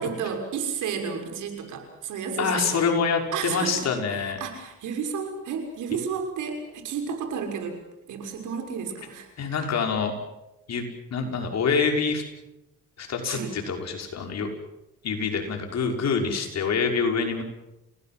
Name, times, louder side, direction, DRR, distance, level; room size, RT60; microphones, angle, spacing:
voice 1, 0.0-2.8 3.3-7.8 8.1-9.3 13.3-13.5, right 6 dB, 85° right, 4 dB, 6.4 m, -32 dB
voice 2, 2.4-4.4 9.4-10.1 10.7-12.2 13.0-14.5 15.0-17.4, left 5 dB, 60° left, 3 dB, 5.9 m, -26 dB
29.5 x 19.0 x 7.8 m, 0.93 s
cardioid pair, 90°, 30 cm